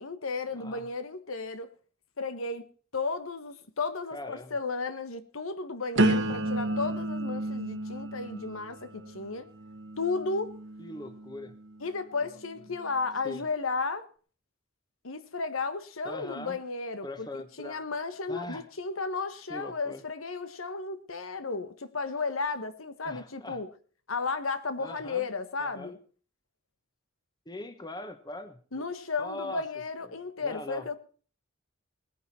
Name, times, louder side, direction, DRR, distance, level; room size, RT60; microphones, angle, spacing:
voice 1, 0.0-1.7 2.2-2.6 2.9-9.5 10.0-10.6 11.8-14.0 15.0-17.3 17.6-23.7 24.1-26.0 28.7-31.0, left 4 dB, 90° left, 1.4 m, -34 dB
voice 2, 4.1-4.6 10.8-11.5 12.2-12.4 13.2-13.4 16.0-16.6 17.0-17.9 18.3-18.7 19.5-20.0 23.0-23.6 24.8-25.2 25.6-25.9 27.4-28.9 29.2-29.6 30.0-31.0, left 1 dB, 20° left, 1.3 m, -41 dB
sound 1, 6.0-11.8 12.4-12.8, right 2 dB, 60° right, 1.3 m, -32 dB
20.0 x 10.0 x 4.3 m
head